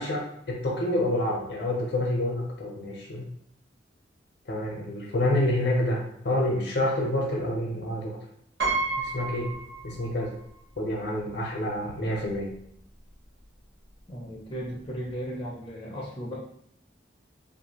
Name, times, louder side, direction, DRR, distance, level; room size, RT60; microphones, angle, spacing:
voice 1, 0.0-3.3 4.5-8.2 9.0-9.6 9.8-10.3 10.8-12.5, left 1 dB, 65° left, -1 dB, 0.7 m, -28 dB
Piano, 8.6-10.4 10.7-10.8 12.0-12.1 12.4-12.6, right 3 dB, 60° right, 0.9 m, -31 dB
voice 2, 14.1-16.4, equal, 25° left, -5 dB, 0.4 m, -36 dB
2.6 x 2.2 x 2.8 m, 0.70 s
head